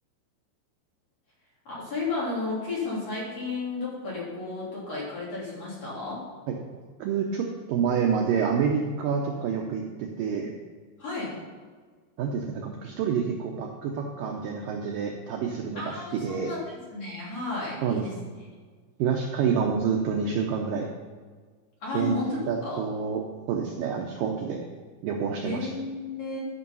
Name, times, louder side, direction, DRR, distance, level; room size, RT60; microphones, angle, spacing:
voice 1, 1.7-6.2 11.0-11.4 15.8-18.1 21.8-22.4 22.6-22.8 25.4-26.4, left 3 dB, 40° left, -7 dB, 4.0 m, -33 dB
voice 2, 7.0-10.5 12.2-16.5 17.8-18.0 19.0-20.9 21.9-23.2 23.5-24.6 25.0-25.7, right 6 dB, 85° right, 1 dB, 1.9 m, -28 dB
13.0 x 5.5 x 5.4 m, 1.5 s
omnidirectional pair, 5.0 m